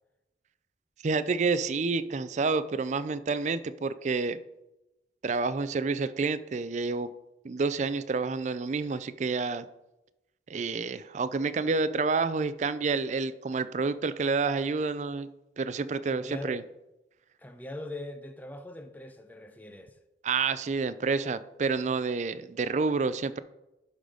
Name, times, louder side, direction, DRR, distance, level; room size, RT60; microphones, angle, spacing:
voice 1, 1.0-4.4 5.2-7.1 7.4-9.7 10.5-15.3 15.6-16.6 20.2-23.4, right 4 dB, 40° right, 0.4 m, -29 dB
voice 2, 16.1-16.6 17.4-20.0, left 1 dB, 10° left, 0.6 m, -41 dB
11.5 x 4.0 x 4.9 m
head